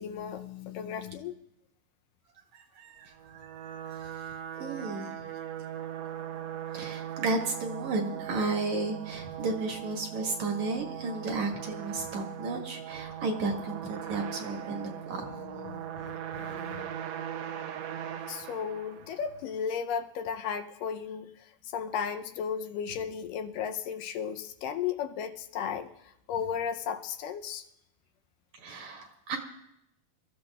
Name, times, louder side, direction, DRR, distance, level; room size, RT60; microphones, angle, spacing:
voice 1, 0.0-1.3 15.6-16.9 18.3-27.6, left 7 dB, 80° left, 6 dB, 2.2 m, -35 dB
voice 2, 2.5-4.1 4.6-5.1 6.7-15.2 28.6-29.4, right 3 dB, 60° right, 2 dB, 2.4 m, -33 dB
sound 1, 3.1-19.4, right 10 dB, 80° right, 1.5 m, -40 dB
27.0 x 14.0 x 2.4 m, 0.79 s
omnidirectional pair, 4.0 m